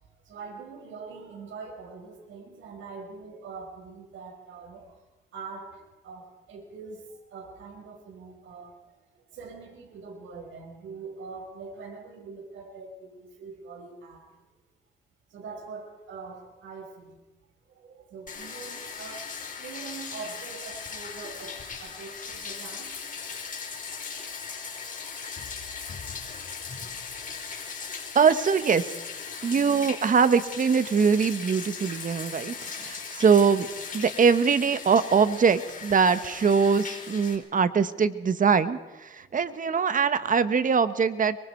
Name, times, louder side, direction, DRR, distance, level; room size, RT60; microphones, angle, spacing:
voice 1, 0.2-5.0 5.3-14.3 15.3-17.2 17.7-19.3 19.6-22.9 26.5-26.6 27.6-28.0 39.1-39.4, right 4 dB, 75° right, 1 dB, 5.7 m, -43 dB
Bathtub (filling or washing), 18.3-37.4, left 5 dB, 40° left, 4.7 m, -38 dB
voice 2, 28.1-28.8 29.4-33.7 33.9-41.4, right 6 dB, 40° right, 12 dB, 1.5 m, -22 dB
24.5 x 23.5 x 4.7 m, 1.2 s
cardioid pair, 90°, 20 cm